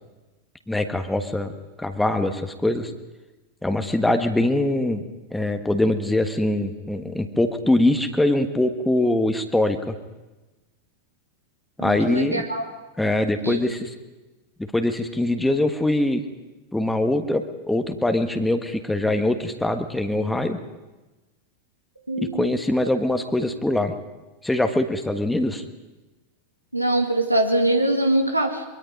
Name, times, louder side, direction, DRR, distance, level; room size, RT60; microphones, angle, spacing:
voice 1, 0.7-1.5 1.8-2.9 3.6-9.9 11.8-12.4 13.0-13.9 14.6-16.2 16.7-20.6 22.3-23.9 24.4-25.6, left 1 dB, 5° left, 6 dB, 1.4 m, -23 dB
voice 2, 11.8-12.7 13.4-13.6 22.1-22.5 26.7-28.7, right 1 dB, 85° right, 4 dB, 2.2 m, -23 dB
23.0 x 23.0 x 5.3 m, 1.1 s
figure-of-eight pair, 90°, 0 cm